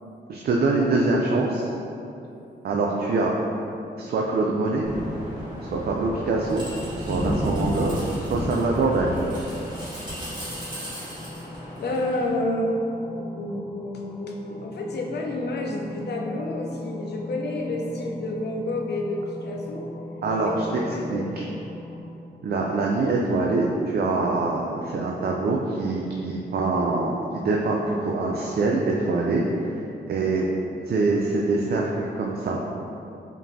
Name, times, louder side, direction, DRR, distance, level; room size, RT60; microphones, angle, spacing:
voice 1, 0.3-1.7 2.6-3.3 4.0-4.8 5.6-6.6 7.0-9.2 20.2-20.6 21.1-21.4 22.4-29.7 30.1-30.4 30.9-32.6, right 3 dB, 60° right, -2 dB, 0.4 m, -24 dB
sound 1, 4.4-22.0, left 2 dB, ahead, 0.6 m, -41 dB
sound 2, 4.8-12.3, equal, 25° right, 1.4 m, -32 dB
voice 2, 11.8-12.8 13.2-19.9 20.4-20.6 20.9-21.3, left 1 dB, 70° left, 0 dB, 0.6 m, -29 dB
5.3 x 2.6 x 2.6 m, 2.8 s
cardioid pair, 70°, 18 cm